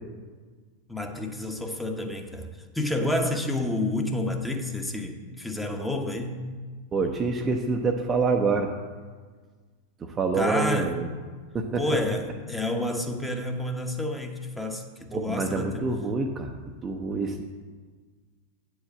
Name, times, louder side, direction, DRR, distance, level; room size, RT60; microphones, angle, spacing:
voice 1, 0.9-6.4 10.3-11.0 11.8-15.9, left 1 dB, 5° left, 3 dB, 1.0 m, -29 dB
voice 2, 6.9-8.7 10.0-11.1 11.5-11.8 15.1-16.5 16.8-17.4, right 4 dB, 20° right, 2 dB, 0.7 m, -26 dB
8.6 x 4.9 x 7.5 m, 1.5 s
figure-of-eight pair, 90°, 0 cm